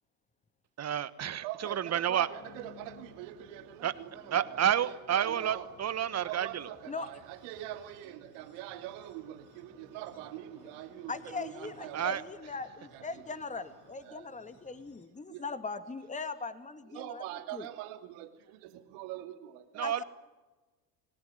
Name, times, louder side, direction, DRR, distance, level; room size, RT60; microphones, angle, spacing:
voice 1, 0.8-2.3 3.8-3.9 4.3-6.7 11.9-12.2 19.7-20.0, right 9 dB, 35° right, 15 dB, 1.3 m, -30 dB
voice 2, 1.4-5.7 6.0-12.3 12.9-13.2 14.0-14.3 15.3-15.4 16.9-19.9, right 13 dB, 65° right, 7 dB, 2.8 m, -44 dB
sound 1, 2.3-15.1, left 5 dB, 55° left, 4.7 m, -59 dB
voice 3, 11.1-17.2 17.5-17.7 19.8-20.0, left 4 dB, 15° left, 10 dB, 2.2 m, -40 dB
27.5 x 18.5 x 9.2 m, 1.2 s
hypercardioid pair, 85°, 46 cm